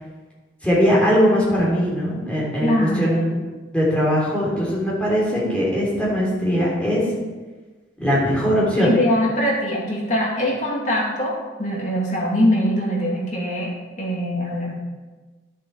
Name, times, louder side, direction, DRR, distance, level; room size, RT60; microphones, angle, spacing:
voice 1, 0.6-2.7 3.0-3.3 3.7-7.0 8.0-8.9, equal, 5° left, -7 dB, 3.6 m, -20 dB
voice 2, 2.6-3.2 8.8-13.7 14.0-14.8, equal, 40° left, -4 dB, 2.6 m, -22 dB
11.0 x 7.6 x 4.9 m, 1.3 s
head